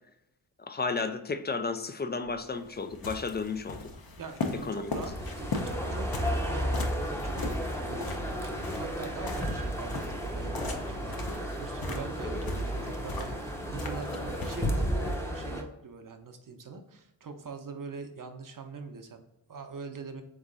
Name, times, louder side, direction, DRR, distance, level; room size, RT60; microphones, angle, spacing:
voice 1, 0.6-3.9 4.7-4.9, left 4 dB, 25° left, 9 dB, 0.3 m, -33 dB
sound 1, 2.3-15.2, left 3 dB, 45° left, 0.8 m, -39 dB
voice 2, 4.2-20.2, right 4 dB, 40° right, 6 dB, 0.7 m, -43 dB
sound 2, 4.8-15.6, equal, 5° left, 0.7 m, -33 dB
3.4 x 3.1 x 3.8 m, 0.89 s
supercardioid pair, 45°, 49 cm